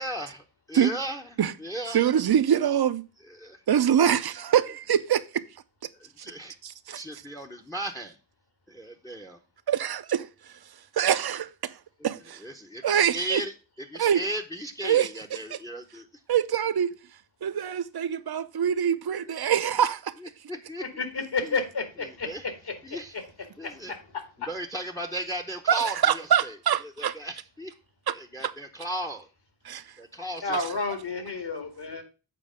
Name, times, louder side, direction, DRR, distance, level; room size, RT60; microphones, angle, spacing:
voice 1, 0.0-2.0 3.3-3.6 5.9-6.6 6.9-8.2 8.7-9.4 12.4-13.5 13.9-16.2 19.2-19.5 20.2-21.0 21.4-21.6 22.0-22.5 22.8-23.1 23.6-23.9 24.5-26.6 27.0-27.7 28.1-29.3 30.0-30.6, right 1 dB, 10° left, 0.8 m, -36 dB
voice 2, 1.9-3.0 3.7-5.4 6.6-7.0 9.7-10.6 10.9-11.8 12.0-12.4 12.8-13.4 13.9-14.2 14.8-15.1 15.5-15.6 16.3-16.9 17.4-20.1 25.7-27.1 28.1-28.2 28.4-28.5 29.7-29.9, right 9 dB, 55° right, 0.7 m, -24 dB
voice 3, 21.0-22.3 23.1-23.2 23.6-24.0 30.4-32.0, left 3 dB, 60° left, 2.2 m, -30 dB
7.7 x 4.5 x 5.0 m
cardioid pair, 65°, 46 cm